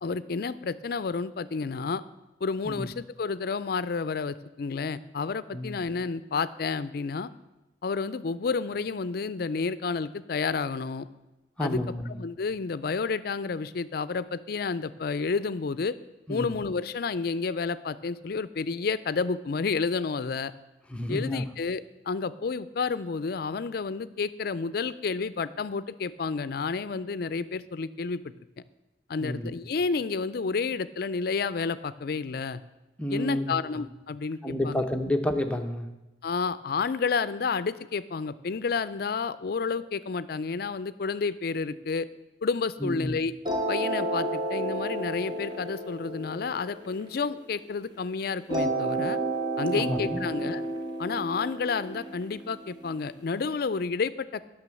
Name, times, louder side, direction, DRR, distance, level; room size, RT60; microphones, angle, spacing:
voice 1, 0.0-2.0 2.4-7.3 7.8-11.1 11.6-11.8 12.1-16.0 16.3-20.5 21.1-28.2 29.1-32.6 33.1-34.4 34.6-34.8 36.2-42.1 42.4-43.3 43.7-49.2 49.6-50.6 51.0-54.5, left 4 dB, 55° left, 16 dB, 0.4 m, -30 dB
voice 2, 11.6-12.2 16.3-16.5 20.9-21.4 29.2-29.5 33.0-33.9 34.4-35.9 42.8-43.2 49.7-50.3, left 1 dB, 5° left, 5 dB, 0.7 m, -30 dB
sound 1, 43.4-47.8 48.5-53.4, right 2 dB, 25° right, 1.1 m, -32 dB
9.1 x 6.3 x 7.6 m, 1.0 s
head